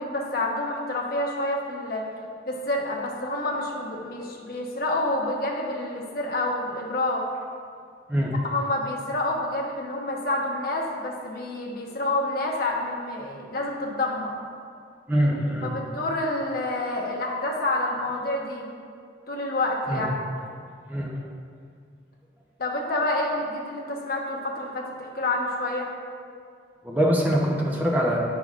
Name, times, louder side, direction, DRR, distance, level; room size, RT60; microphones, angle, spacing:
voice 1, 0.0-2.0 2.5-7.2 8.4-14.3 15.6-18.7 19.3-20.1 22.6-25.9, left 2 dB, 55° left, -1 dB, 0.9 m, -28 dB
voice 2, 15.1-15.7 19.9-20.0 20.9-21.1 26.8-28.2, equal, 10° right, -3 dB, 0.8 m, -23 dB
8.6 x 6.0 x 2.5 m, 2.2 s
head